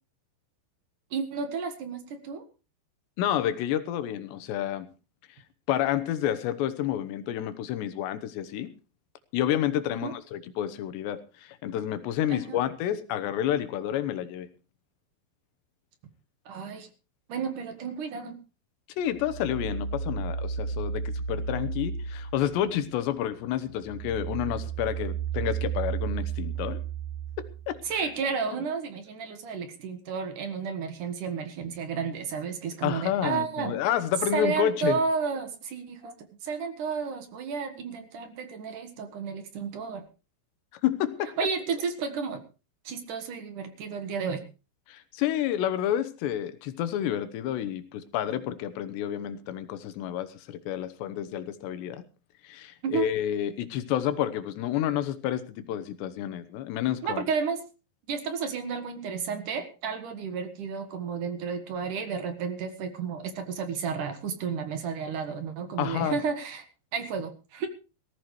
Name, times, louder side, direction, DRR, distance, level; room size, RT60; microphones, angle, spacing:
voice 1, 1.1-2.4 10.0-10.1 12.3-12.6 16.5-16.9 17.3-18.4 27.9-33.8 34.3-36.1 36.4-40.0 41.4-42.4 42.8-44.4 52.8-53.1 57.0-57.6 58.1-66.6 66.9-67.7, right 5 dB, 60° right, 7 dB, 2.6 m, -32 dB
voice 2, 3.2-4.9 5.7-8.7 9.3-14.5 19.0-26.8 27.4-28.1 32.8-35.0 40.8-41.4 44.9-52.0 52.4-57.2 65.8-66.2, left 11 dB, 80° left, 12 dB, 3.2 m, -29 dB
sound 1, 19.1-23.0 23.4-28.0, right 6 dB, 80° right, 9.9 m, -33 dB
19.0 x 15.0 x 3.2 m, 0.33 s
omnidirectional pair, 5.0 m